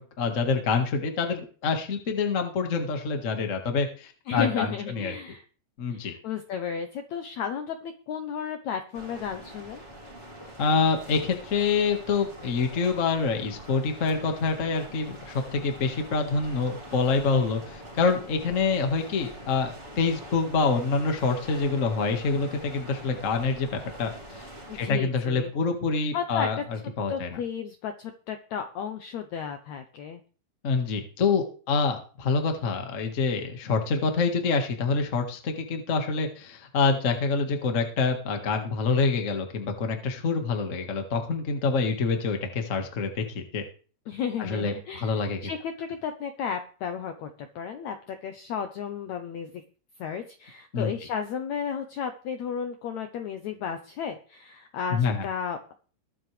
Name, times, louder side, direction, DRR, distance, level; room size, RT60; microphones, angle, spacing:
voice 1, 0.0-5.2 5.8-6.1 10.6-24.5 24.7-26.6 27.0-27.4 30.6-43.6 44.4-45.4 50.7-50.9 54.9-55.3, left 4 dB, 55° left, 5 dB, 0.8 m, -26 dB
voice 2, 4.3-5.4 5.9-9.8 24.7-25.5 26.1-26.5 27.1-30.2 44.1-49.6 50.0-55.7, left 7 dB, 80° left, 7 dB, 1.6 m, -33 dB
sound 1, 8.9-24.9, right 1 dB, 20° right, 2.5 m, -44 dB
22.0 x 7.7 x 3.4 m, 0.40 s
omnidirectional pair, 4.4 m